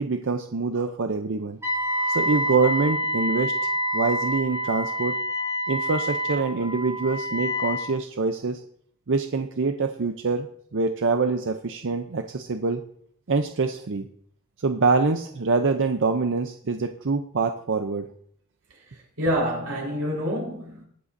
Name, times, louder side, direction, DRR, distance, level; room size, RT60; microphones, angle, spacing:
voice 1, 0.0-1.6 2.1-3.5 3.9-5.2 5.7-8.6 9.1-10.5 10.7-12.8 13.3-14.1 14.6-18.1, right 4 dB, 60° right, 0.6 m, -25 dB
Wind instrument woodwind instrument, 1.6-7.9, equal, 15° right, 2.4 m, -27 dB
voice 2, 19.2-20.8, equal, 90° right, 4.6 m, -27 dB
21.0 x 7.6 x 2.7 m
head